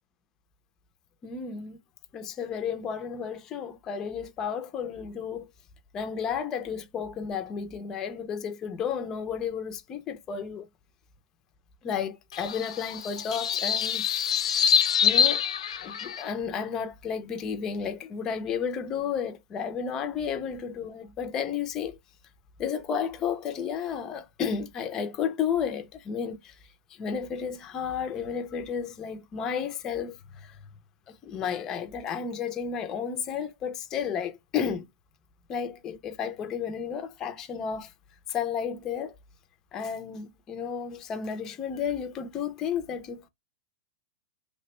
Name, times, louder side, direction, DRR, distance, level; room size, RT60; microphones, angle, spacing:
voice 1, 1.2-1.8 2.1-5.5 5.9-10.7 11.8-14.8 15.0-15.5 15.8-22.0 22.6-26.6 26.9-30.6 31.1-34.9 35.5-37.9 38.3-39.2 39.7-43.3, left 7 dB, 15° left, 0.3 m, -32 dB
sound 1, 12.3-16.3, left 8 dB, 85° left, 0.5 m, -25 dB
3.1 x 2.0 x 2.9 m
supercardioid pair, 175°, 3 cm